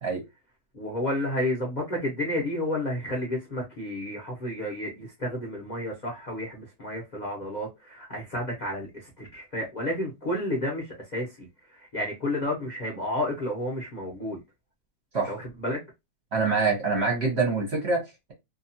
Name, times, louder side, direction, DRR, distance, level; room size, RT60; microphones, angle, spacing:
voice 1, 0.7-14.4 15.3-15.8, left 1 dB, 55° left, 0.5 m, -31 dB
voice 2, 16.3-18.3, right 4 dB, 50° right, 0.8 m, -25 dB
2.8 x 2.3 x 2.7 m
omnidirectional pair, 1.9 m